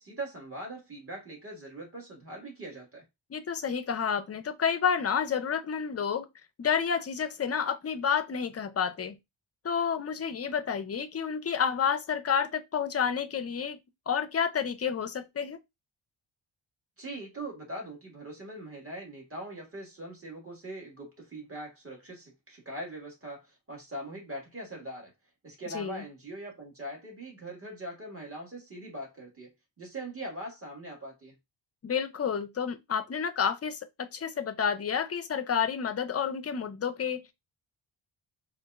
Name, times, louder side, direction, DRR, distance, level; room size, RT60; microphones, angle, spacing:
voice 1, 0.0-3.0 17.0-25.1 25.4-29.5 29.8-31.3, right 1 dB, 25° right, 1.6 m, -41 dB
voice 2, 3.3-6.3 6.6-9.2 9.6-13.8 14.1-15.6 25.7-26.0 31.8-37.3, left 7 dB, 30° left, 0.4 m, -30 dB
4.0 x 2.5 x 2.3 m
wide cardioid pair, 115°, 50 cm